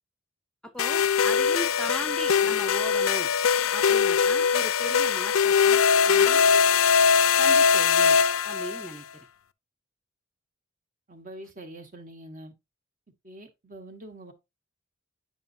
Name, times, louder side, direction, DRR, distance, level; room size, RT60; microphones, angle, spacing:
voice 1, 0.6-3.3 3.7-6.4 7.3-9.3, equal, 5° left, 0.5 m, -38 dB
sound 1, 0.8-8.9, left 6 dB, 90° left, 0.4 m, -21 dB
voice 2, 11.1-12.5 13.2-14.3, right 1 dB, 40° right, 1.2 m, -44 dB
9.2 x 5.2 x 2.6 m
head